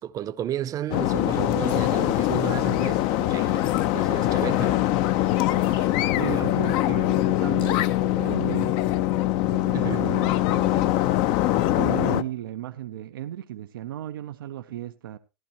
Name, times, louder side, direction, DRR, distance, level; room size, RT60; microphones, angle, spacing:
voice 1, 0.0-4.8 6.3-6.5 9.7-10.0, right 10 dB, 30° right, 0.6 m, -33 dB
sound 1, 0.9-12.2, left 14 dB, 50° left, 0.6 m, -23 dB
sound 2, 1.6-2.0 3.6-3.9 5.6-5.9 7.6-7.9, left 7 dB, 90° left, 7.6 m, -40 dB
voice 2, 6.1-8.8 9.5-11.1 11.8-15.2, right 12 dB, 90° right, 0.5 m, -35 dB
14.0 x 11.0 x 2.9 m
supercardioid pair, 120°, 11 cm